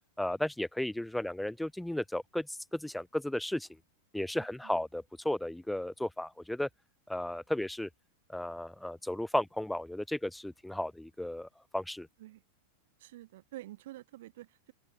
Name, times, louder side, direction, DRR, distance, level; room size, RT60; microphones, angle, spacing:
voice 1, 0.2-3.7 4.1-6.7 7.1-7.9 8.3-12.1, left 1 dB, 5° left, 0.4 m, -34 dB
voice 2, 13.0-14.7, right 16 dB, 55° right, 2.9 m, -48 dB
open air
figure-of-eight pair, 90°, 0 cm